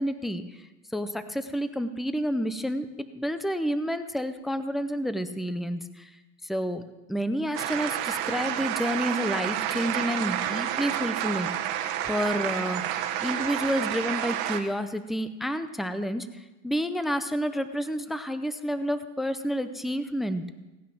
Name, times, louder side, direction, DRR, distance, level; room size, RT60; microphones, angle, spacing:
voice 1, 0.0-2.9 3.1-6.1 6.4-6.8 7.1-11.5 12.1-20.5, equal, ahead, 10 dB, 0.5 m, -30 dB
sound 1, 7.5-14.6, right 11 dB, 60° right, 1.3 m, -30 dB
17.5 x 9.3 x 5.9 m, 1.1 s
supercardioid pair, 150°, 32 cm